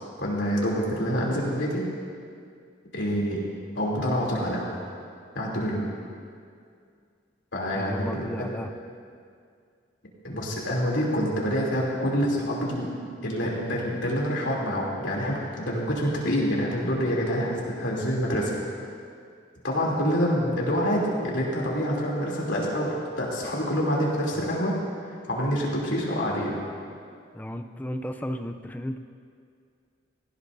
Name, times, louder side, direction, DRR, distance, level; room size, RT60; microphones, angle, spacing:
voice 1, 0.2-1.8 2.9-3.4 3.7-4.7 5.3-5.9 7.5-8.5 10.2-12.9 13.2-18.5 19.6-24.7 25.0-26.5, equal, 75° left, -4 dB, 3.1 m, -26 dB
voice 2, 7.8-8.7 24.3-24.5 27.3-29.0, equal, 10° left, 7 dB, 0.5 m, -34 dB
17.5 x 16.0 x 2.7 m, 2.2 s
head